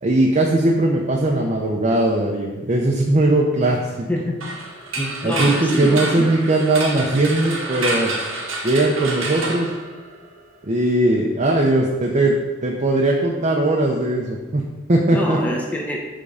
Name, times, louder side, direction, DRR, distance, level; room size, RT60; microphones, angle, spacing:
voice 1, 0.0-4.1 5.2-8.1 8.6-9.7 10.6-12.3 12.6-15.4, right 2 dB, 35° right, -1 dB, 0.7 m, -19 dB
sound 1, 4.4-10.4, right 2 dB, 85° right, 1.6 m, -28 dB
voice 2, 4.9-6.3 15.1-16.0, equal, 10° left, -1 dB, 0.9 m, -26 dB
8.5 x 3.7 x 5.5 m, 1.2 s
head